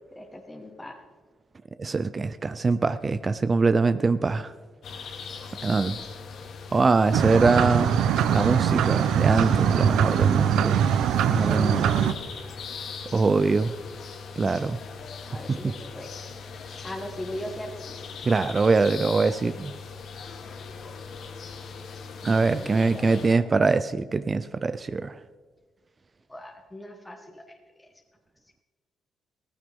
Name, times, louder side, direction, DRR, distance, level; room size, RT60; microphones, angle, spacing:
voice 1, 0.1-1.0 11.4-12.3 15.3-16.1 16.8-17.7 22.4-23.6 26.3-27.9, left 1 dB, 10° left, 1 dB, 1.5 m, -39 dB
voice 2, 1.8-4.5 5.6-6.0 6.7-8.0 8.3-10.8 11.3-11.8 13.1-13.7 14.4-14.8 15.5-15.7 18.2-19.7 22.2-25.2, right 4 dB, 30° right, 12 dB, 0.4 m, -23 dB
sound 1, 4.8-23.4, left 5 dB, 65° left, 1.5 m, -40 dB
sound 2, 7.1-12.1, right 9 dB, 85° right, 0.6 m, -22 dB
16.0 x 14.5 x 3.6 m, 1.5 s
cardioid pair, 90°, 0 cm